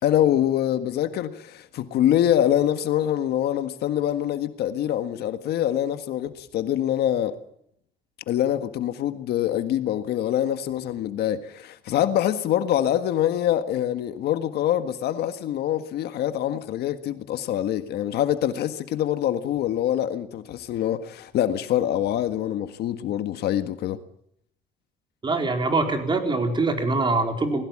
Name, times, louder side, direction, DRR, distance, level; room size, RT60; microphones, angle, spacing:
voice 1, 0.0-7.4 8.3-24.0, left 11 dB, 75° left, 1.6 m, -25 dB
voice 2, 25.2-27.6, right 3 dB, 30° right, 4.4 m, -23 dB
20.5 x 17.0 x 8.7 m
cardioid pair, 110°, 17 cm